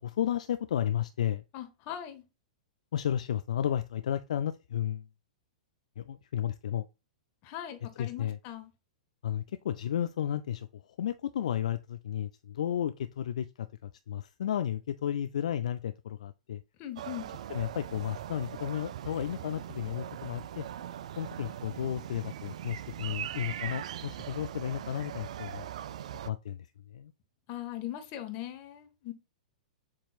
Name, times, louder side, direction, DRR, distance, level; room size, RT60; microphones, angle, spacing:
voice 1, 0.0-1.4 2.9-5.0 6.0-6.9 8.0-8.4 9.2-16.6 17.5-20.7 21.2-25.6 26.2-27.1, left 10 dB, 70° left, 0.3 m, -33 dB
voice 2, 1.5-2.2 7.4-8.7 16.8-17.3 27.5-29.1, left 12 dB, 45° left, 1.2 m, -40 dB
sound 1, 17.0-26.3, right 10 dB, 65° right, 0.3 m, -41 dB
7.2 x 2.9 x 2.3 m
hypercardioid pair, 110°, 4 cm